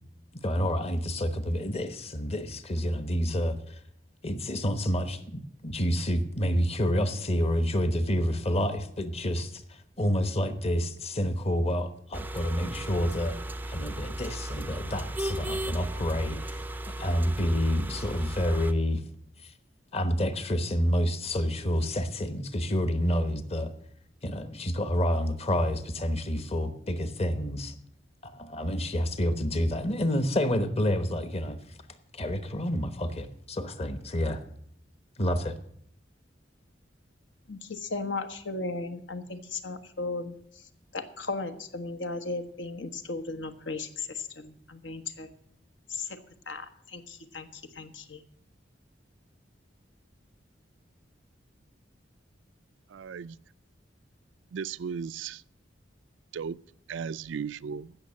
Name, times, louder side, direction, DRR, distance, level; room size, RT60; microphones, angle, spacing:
voice 1, 0.4-3.8 4.2-9.6 10.0-13.4 13.7-19.0 19.9-23.7 24.2-27.7 28.2-31.6 32.1-34.4 35.2-35.6, equal, 35° left, 1.0 m, -28 dB
sound 1, 12.1-18.7, right 1 dB, 10° right, 0.4 m, -36 dB
voice 2, 37.5-40.3 40.9-45.3 45.9-46.2 46.5-48.2, left 3 dB, 80° left, 1.3 m, -36 dB
voice 3, 52.9-53.4 54.5-55.4 56.3-56.6 56.9-58.0, right 6 dB, 80° right, 0.4 m, -36 dB
16.0 x 6.4 x 7.5 m
head